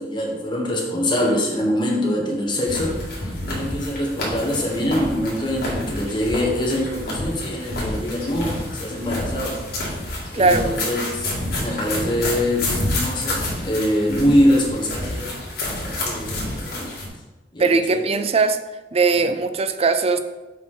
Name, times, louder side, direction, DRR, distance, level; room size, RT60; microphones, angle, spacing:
voice 1, 0.0-2.9 3.5-9.6 10.3-11.3 11.6-16.9 17.5-18.1 19.1-19.3, left 1 dB, 25° left, -2 dB, 1.4 m, -24 dB
sound 1, 2.7-17.1, left 1 dB, 60° left, 2.2 m, -29 dB
voice 2, 10.3-10.6 17.6-18.6 18.9-20.2, right 4 dB, 35° right, 9 dB, 0.4 m, -19 dB
7.1 x 4.8 x 3.8 m, 1.1 s
head